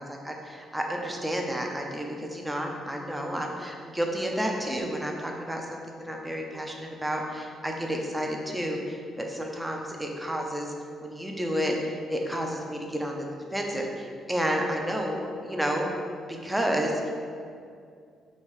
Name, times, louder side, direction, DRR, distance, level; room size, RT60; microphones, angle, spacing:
voice 1, 0.0-10.7 11.0-13.3 13.5-15.9 16.4-17.1, equal, 10° right, 1 dB, 0.6 m, -31 dB
5.4 x 2.6 x 3.2 m, 2.3 s
cardioid pair, 90°, 0 cm